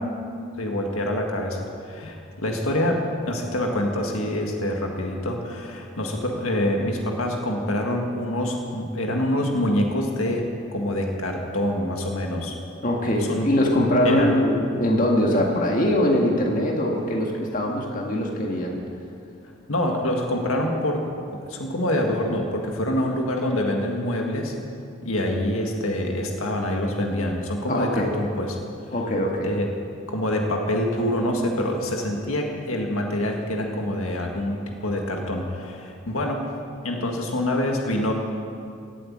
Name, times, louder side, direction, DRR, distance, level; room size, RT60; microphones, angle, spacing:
voice 1, 0.6-12.5 13.3-13.5 14.0-14.4 19.7-24.5 25.0-28.6 29.4-29.7 30.1-36.5 36.8-38.1, left 1 dB, 80° left, 2 dB, 1.8 m, -26 dB
voice 2, 12.8-18.8 27.7-28.1 28.9-29.5, left 1 dB, 40° left, 0 dB, 1.8 m, -22 dB
16.5 x 8.4 x 8.7 m, 2.4 s
head